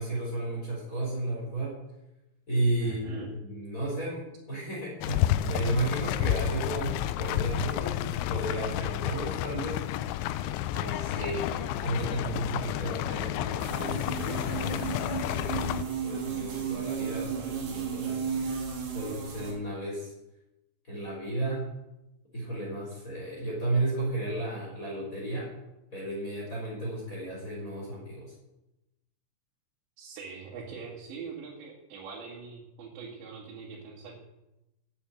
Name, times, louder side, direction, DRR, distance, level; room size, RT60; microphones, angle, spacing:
voice 1, 0.0-1.8 2.5-9.8 10.7-18.2 18.9-20.1 20.9-21.7 22.3-25.5 25.9-28.3, right 2 dB, 20° left, -5 dB, 4.1 m, -33 dB
voice 2, 2.8-3.3 10.9-11.4 30.0-34.2, right 5 dB, 80° right, -3 dB, 4.0 m, -43 dB
sound 1, 5.0-15.8, left 12 dB, 90° left, 2.9 m, -30 dB
sound 2, 13.6-19.5, right 7 dB, 60° right, 4.0 m, -34 dB
9.0 x 8.4 x 9.1 m, 0.93 s
omnidirectional pair, 5.0 m